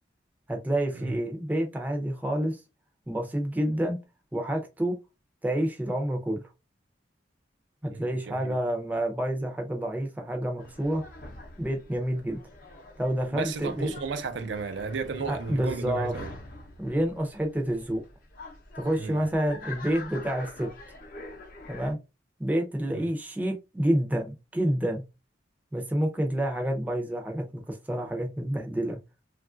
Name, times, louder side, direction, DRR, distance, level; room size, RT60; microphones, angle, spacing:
voice 1, 0.5-2.6 3.1-4.0 4.3-4.9 5.4-6.4 7.8-11.0 11.6-12.4 13.0-13.9 15.3-16.1 16.8-18.0 18.8-20.7 21.7-22.0 22.4-25.0 25.7-29.0, right 1 dB, 10° right, 0.5 m, -28 dB
voice 2, 7.9-8.6 13.3-16.3 19.0-19.2 22.9-23.1, right 4 dB, 75° right, 0.5 m, -34 dB
sound 1, 10.6-21.9, left 2 dB, 50° left, 0.7 m, -45 dB
3.0 x 2.4 x 2.4 m
head